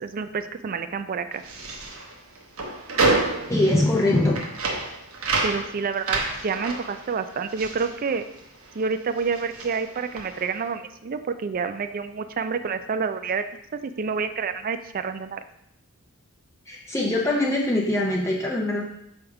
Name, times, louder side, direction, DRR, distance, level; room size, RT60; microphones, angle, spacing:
voice 1, 0.0-1.4 5.4-8.2 8.7-13.4 13.7-15.4, right 5 dB, 45° right, 10 dB, 0.4 m, -28 dB
sound 1, 1.3-8.8 9.1-10.6, right 3 dB, 85° right, 1.0 m, -29 dB
voice 2, 3.5-4.4 16.7-18.8, left 1 dB, 15° left, -3 dB, 0.6 m, -22 dB
6.5 x 3.5 x 4.7 m, 0.79 s
head